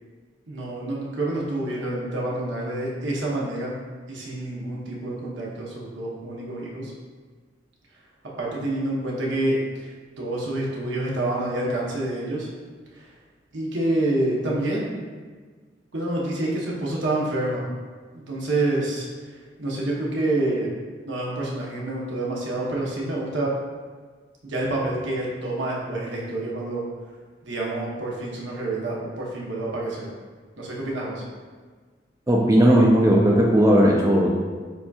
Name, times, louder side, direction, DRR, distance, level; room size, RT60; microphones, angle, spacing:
voice 1, 0.5-3.7 4.1-6.9 8.4-12.5 13.0-13.1 13.5-14.9 15.9-17.6 18.1-19.1 19.6-20.7 21.0-23.6 24.4-26.8 27.4-30.1 30.6-31.2, right 2 dB, 70° right, -4 dB, 0.9 m, -27 dB
voice 2, 32.3-34.3, equal, 15° right, -3 dB, 0.3 m, -16 dB
6.9 x 2.7 x 2.3 m, 1.5 s
head